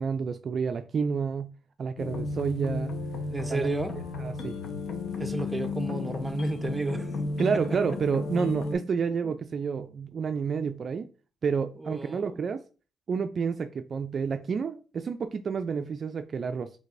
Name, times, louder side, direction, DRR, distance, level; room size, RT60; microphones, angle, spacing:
voice 1, 0.0-1.5 1.8-2.9 3.5-3.7 4.2-4.5 7.4-11.1 11.4-12.6 13.1-16.7, right 5 dB, 50° right, 0.3 m, -29 dB
sound 1, 2.0-8.7, left 3 dB, 70° left, 0.9 m, -33 dB
voice 2, 3.3-4.0 5.2-7.1 7.5-7.8 9.2-9.3 11.8-12.4, right 2 dB, 15° right, 0.6 m, -32 dB
5.2 x 3.3 x 2.5 m
cardioid pair, 90°, 0 cm